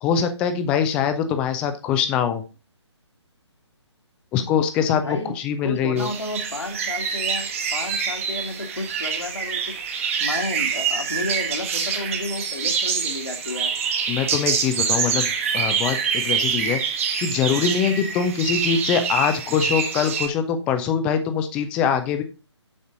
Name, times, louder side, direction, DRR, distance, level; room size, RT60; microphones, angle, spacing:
voice 1, 0.0-2.4 4.3-6.1 14.1-15.3 15.5-16.8 17.2-22.2, left 7 dB, 5° left, 0.4 m, -23 dB
voice 2, 5.0-5.3 5.6-9.8 10.2-13.8, left 2 dB, 70° left, 2.0 m, -31 dB
sound 1, 6.0-20.3, right 6 dB, 30° right, 1.2 m, -26 dB
7.4 x 6.5 x 3.8 m
figure-of-eight pair, 140°, 15 cm